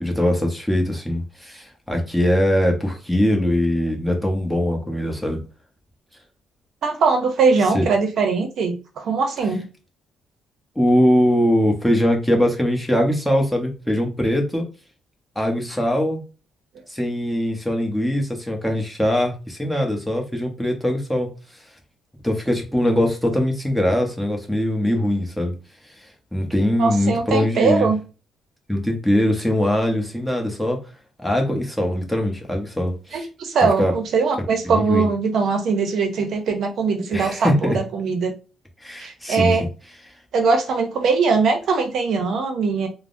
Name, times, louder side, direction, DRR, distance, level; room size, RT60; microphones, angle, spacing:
voice 1, 0.0-5.4 7.7-7.9 10.8-14.6 15.4-16.2 16.9-21.3 22.2-25.5 26.3-27.9 28.7-30.8 31.2-33.2 33.8-33.9 34.6-35.1 37.1-37.8 38.8-39.6, left 1 dB, 5° left, 2 dB, 0.9 m, -21 dB
voice 2, 6.8-9.6 26.8-28.0 33.1-38.3 39.0-39.6 40.3-42.9, right 4 dB, 65° right, 5 dB, 0.6 m, -21 dB
3.3 x 2.0 x 2.5 m, 0.33 s
cardioid pair, 90°, 0 cm